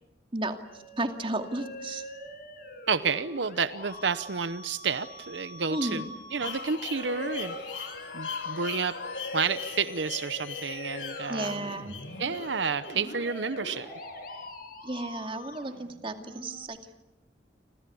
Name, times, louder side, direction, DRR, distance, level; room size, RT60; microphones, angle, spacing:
voice 1, 0.3-2.0 5.7-6.0 11.3-11.9 14.8-16.8, right 2 dB, 30° right, 6 dB, 2.3 m, -33 dB
Musical instrument, 0.6-16.6, left 1 dB, 55° left, 6.8 m, -45 dB
voice 2, 2.9-6.0 6.3-7.5 8.1-8.9 9.3-11.7 12.2-13.9, right 5 dB, 80° right, 13 dB, 0.9 m, -30 dB
Odd aviary, 6.4-14.3, left 4 dB, 90° left, 3.6 m, -39 dB
29.5 x 26.5 x 7.0 m, 1.0 s
head